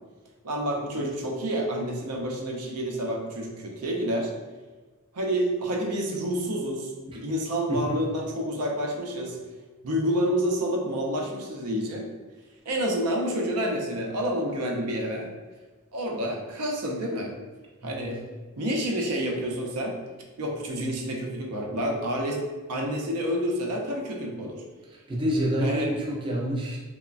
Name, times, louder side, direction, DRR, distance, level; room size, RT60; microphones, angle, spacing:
voice 1, 0.4-4.3 5.1-9.4 9.8-12.1 12.7-15.3 15.9-17.3 17.8-18.2 18.6-19.9 20.4-22.4 22.7-24.6 25.6-25.9, equal, 80° right, 0 dB, 0.5 m, -29 dB
voice 2, 7.7-8.0 17.8-18.1 24.9-26.8, equal, 25° right, -3 dB, 0.4 m, -28 dB
3.0 x 2.1 x 2.4 m, 1.3 s
head